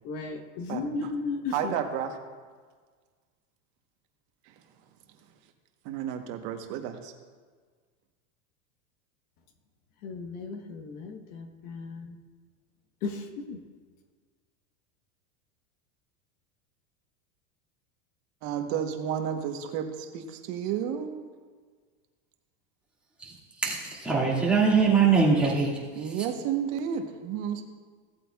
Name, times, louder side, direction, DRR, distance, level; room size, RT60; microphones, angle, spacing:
voice 1, 0.0-1.7 10.0-12.2 13.0-13.6, left 4 dB, 50° left, 6 dB, 1.2 m, -35 dB
voice 2, 0.7-1.1 1.5-2.2 4.5-4.6 5.8-7.1 18.4-21.3 26.0-27.6, right 8 dB, 45° right, 5 dB, 1.1 m, -32 dB
voice 3, 23.2-25.8 26.1-26.3, right 5 dB, 5° right, -6 dB, 2.0 m, -23 dB
16.5 x 8.3 x 2.3 m, 1.5 s
supercardioid pair, 150°, 40 cm